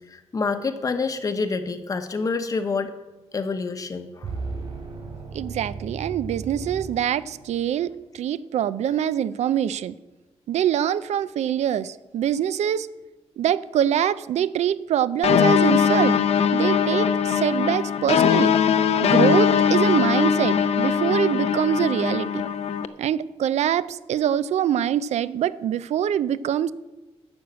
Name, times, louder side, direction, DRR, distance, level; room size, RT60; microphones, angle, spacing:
voice 1, 0.1-2.9 3.3-4.3, left 4 dB, 30° left, 8 dB, 0.9 m, -27 dB
sound 1, 4.2-7.7, right 4 dB, 55° right, 3.1 m, -35 dB
voice 2, 5.3-10.0 10.5-12.9 13.4-16.2 16.5-18.5 19.0-22.4 23.0-26.7, right 10 dB, 80° right, 16 dB, 0.4 m, -24 dB
sound 2, 15.2-22.9, left 7 dB, 65° left, 0.6 m, -20 dB
11.5 x 6.2 x 8.1 m, 1.1 s
wide cardioid pair, 170°, 11 cm